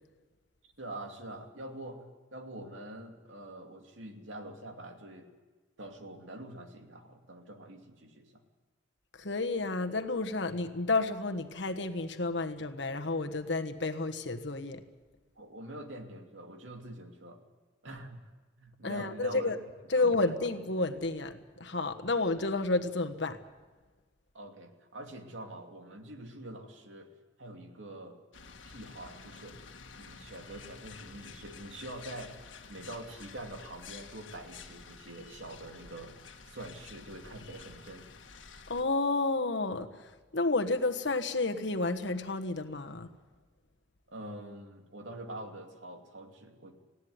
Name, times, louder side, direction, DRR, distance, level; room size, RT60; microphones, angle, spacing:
voice 1, 0.6-5.3 5.8-8.3 15.4-17.4 17.8-18.3 18.6-19.5 20.0-20.4 24.3-27.1 27.4-28.2 28.6-29.7 29.9-32.4 32.7-36.2 36.5-38.1 44.1-46.7, right 1 dB, 90° right, 4 dB, 2.5 m, -45 dB
voice 2, 9.1-14.8 18.8-19.6 19.9-23.4 38.7-43.1, left 3 dB, 65° left, 6 dB, 1.4 m, -31 dB
sound 1, 28.3-38.8, left 5 dB, 90° left, 1.7 m, -50 dB
19.0 x 16.0 x 9.5 m, 1.3 s
head